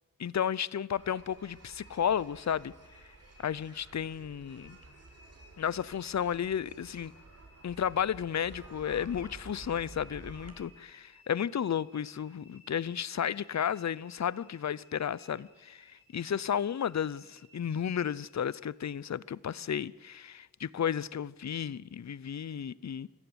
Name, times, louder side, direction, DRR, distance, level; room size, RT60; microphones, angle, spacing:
voice 1, 0.2-2.7 3.4-4.8 5.6-7.1 7.6-23.1, left 8 dB, 55° left, 0.6 m, -33 dB
sound 1, 0.9-18.6, left 1 dB, 15° left, 7.1 m, -62 dB
sound 2, 1.0-10.5, right 3 dB, 45° right, 4.6 m, -52 dB
25.0 x 15.0 x 8.0 m
wide cardioid pair, 75°, 34 cm